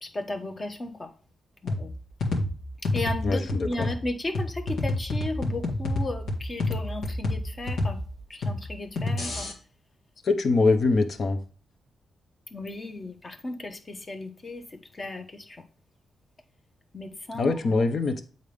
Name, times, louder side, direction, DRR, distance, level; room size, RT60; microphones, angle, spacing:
voice 1, 0.0-1.1 1.6-1.9 2.9-8.0 8.3-9.5 12.5-15.7 16.9-17.8, left 2 dB, 30° left, 1.0 m, -35 dB
sound 1, 1.7-9.5, left 2 dB, 90° left, 1.8 m, -30 dB
voice 2, 3.2-3.9 10.2-11.4 17.4-18.2, left 3 dB, 55° left, 0.9 m, -23 dB
8.1 x 3.9 x 3.4 m
cardioid pair, 100°, 0 cm